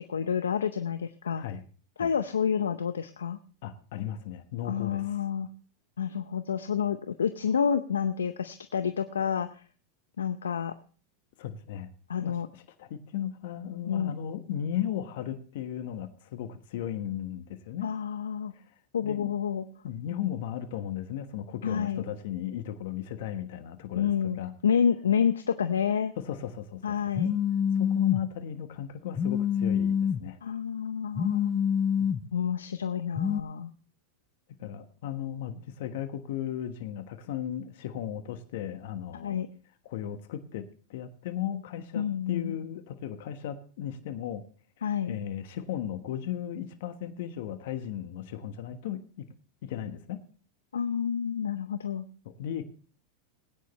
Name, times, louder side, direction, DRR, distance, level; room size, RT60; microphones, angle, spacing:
voice 1, 0.0-1.4 2.0-3.4 4.6-5.5 6.0-9.6 10.2-10.7 12.1-12.5 13.9-14.1 17.8-18.5 18.9-19.7 21.6-22.0 24.0-26.1 26.8-27.4 30.4-31.6 32.3-33.7 39.2-39.5 41.9-42.6 44.8-45.2 50.7-52.1, left 7 dB, 85° left, 10 dB, 0.7 m, -29 dB
voice 2, 3.6-5.1 11.4-11.9 12.2-12.4 12.8-17.9 19.0-19.3 19.8-24.5 26.2-27.0 27.8-30.4 32.0-32.1 34.6-39.4 39.8-44.4 44.8-49.3 49.6-50.2 52.2-52.6, left 10 dB, 65° left, 9 dB, 1.3 m, -36 dB
Telephone, 27.2-28.2 29.2-30.2 31.2-32.2 33.2-33.4, left 8 dB, 25° left, 0.8 m, -26 dB
19.5 x 9.6 x 3.2 m, 0.40 s
hypercardioid pair, 100°, 0 cm